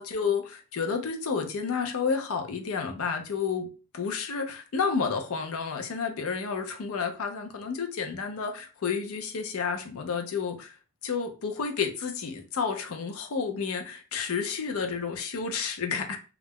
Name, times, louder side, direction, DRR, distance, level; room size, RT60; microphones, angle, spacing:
voice 1, 0.0-10.7 11.0-16.2, left 5 dB, 75° left, 0.5 m, -31 dB
2.4 x 2.1 x 3.4 m
head